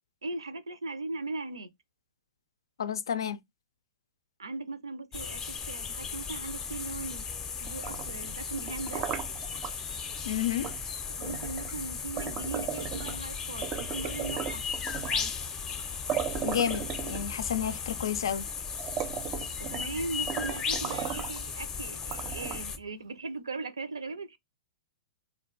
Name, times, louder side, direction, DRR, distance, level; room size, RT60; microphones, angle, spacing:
voice 1, 0.2-1.7 4.4-5.4 5.7-7.2 7.6-9.1 11.2-14.6 15.0-15.3 19.7-24.4, right 3 dB, 90° right, 0.5 m, -38 dB
voice 2, 2.8-3.4 10.2-10.7 16.4-18.4, left 9 dB, 75° left, 0.3 m, -30 dB
sound 1, 5.1-22.8, left 6 dB, 25° left, 0.5 m, -36 dB
sound 2, 7.7-9.7 10.6-10.8 11.2-13.3 13.6-15.3 15.8-15.9 16.1-17.6 18.2-18.3 18.7-20.0 20.3-21.4 22.0-22.8, right 9 dB, 30° right, 0.4 m, -36 dB
2.3 x 2.1 x 3.8 m
hypercardioid pair, 115°, 2 cm